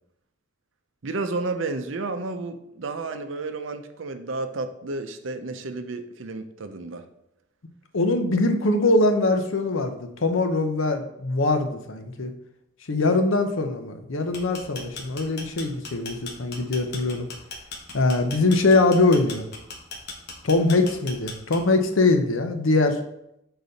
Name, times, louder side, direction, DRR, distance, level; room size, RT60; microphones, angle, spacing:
voice 1, 1.0-7.0, right 3 dB, 75° right, 8 dB, 0.6 m, -31 dB
voice 2, 7.9-12.3 12.9-17.3 17.9-19.4 20.4-23.0, left 2 dB, 80° left, 6 dB, 0.7 m, -22 dB
sound 1, 14.2-21.9, left 3 dB, 55° left, 1.2 m, -38 dB
6.7 x 4.0 x 4.0 m, 0.80 s
head